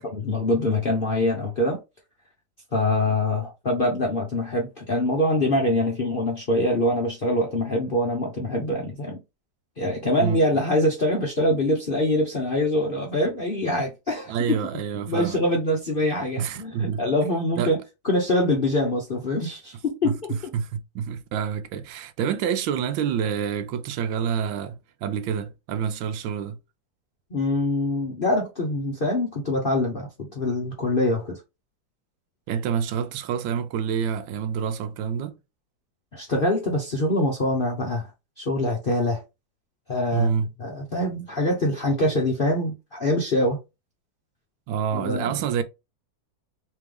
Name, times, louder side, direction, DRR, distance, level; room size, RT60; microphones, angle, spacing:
voice 1, 0.0-1.8 2.7-9.2 9.8-14.6 15.1-17.8 18.0-20.4 27.3-31.4 36.1-38.1 38.4-39.2 39.9-40.3 40.6-43.6 44.9-45.4, left 1 dB, 50° left, 0.6 m, -24 dB
voice 2, 14.3-15.4 16.4-17.0 17.6-17.7 20.0-20.1 20.5-26.6 32.5-35.4 40.1-40.5 44.7-45.6, right 7 dB, 80° right, 1.3 m, -27 dB
3.6 x 3.3 x 3.3 m
omnidirectional pair, 2.1 m